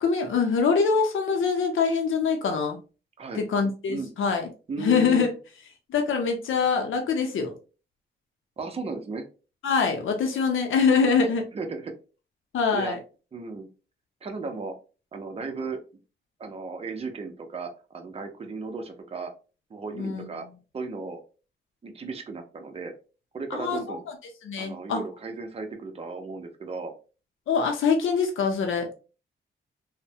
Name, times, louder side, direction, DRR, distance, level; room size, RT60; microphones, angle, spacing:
voice 1, 0.0-2.8 3.3-4.5 4.8-5.3 5.9-7.5 9.6-11.5 12.5-13.0 20.0-20.3 23.5-24.0 24.4-25.0 27.5-28.9, left 5 dB, 80° left, 3 dB, 0.6 m, -24 dB
voice 2, 4.7-5.3 8.6-9.3 11.5-11.9 12.7-13.0 13.3-13.7 14.2-14.7 15.1-15.8 16.4-19.3 19.7-20.5 20.7-21.2 21.8-22.9 23.3-24.0 24.6-26.9, right 4 dB, 30° right, 5 dB, 0.6 m, -35 dB
3.1 x 2.1 x 2.7 m, 0.34 s
cardioid pair, 95°, 20 cm